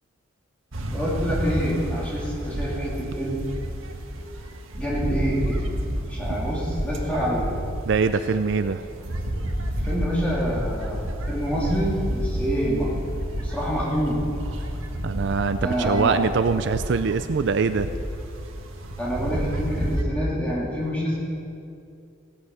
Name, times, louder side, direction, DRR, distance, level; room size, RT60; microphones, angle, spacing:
Beach goers and surf, 0.7-20.0, right 1 dB, 80° right, 1.3 m, -30 dB
voice 1, 0.9-3.4 4.7-5.6 6.1-7.5 9.7-12.9 13.4-14.2 15.6-16.3 19.0-21.2, equal, 5° left, -6 dB, 3.0 m, -27 dB
voice 2, 7.9-8.8 15.0-17.9, right 5 dB, 60° right, 10 dB, 0.4 m, -23 dB
15.5 x 9.4 x 5.6 m, 2.6 s
head